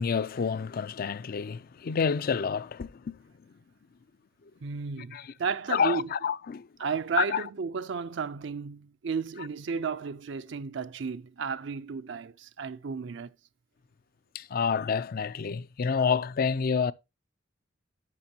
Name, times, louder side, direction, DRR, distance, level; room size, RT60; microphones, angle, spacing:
voice 1, 0.0-3.2 5.1-5.3 5.7-6.7 7.2-7.4 14.3-16.9, left 6 dB, 50° left, 0.4 m, -28 dB
voice 2, 4.6-6.1 6.8-13.3, right 5 dB, 70° right, 0.5 m, -33 dB
11.0 x 8.0 x 2.8 m
head